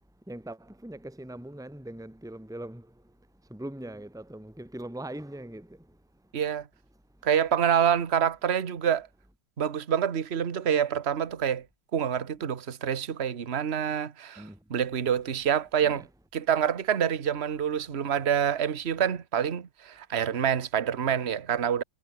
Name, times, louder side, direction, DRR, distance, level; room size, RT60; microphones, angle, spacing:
voice 1, 0.2-6.3 14.4-14.7 15.8-16.1, right 1 dB, ahead, 3.4 m, -42 dB
voice 2, 6.3-6.7 7.2-9.1 9.6-11.6 11.9-14.4 14.7-16.0 16.3-21.8, right 8 dB, 35° right, 1.3 m, -27 dB
omnidirectional pair, 2.4 m